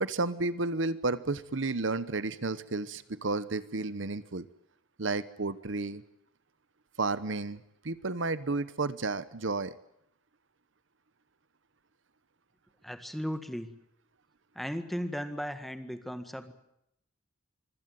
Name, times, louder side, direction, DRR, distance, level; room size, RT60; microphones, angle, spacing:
voice 1, 0.0-4.5 5.0-6.0 7.0-9.7, right 3 dB, 65° right, 15 dB, 1.0 m, -32 dB
voice 2, 12.8-13.7 14.5-16.5, equal, ahead, 9 dB, 1.7 m, -36 dB
25.0 x 16.5 x 9.2 m, 0.79 s
head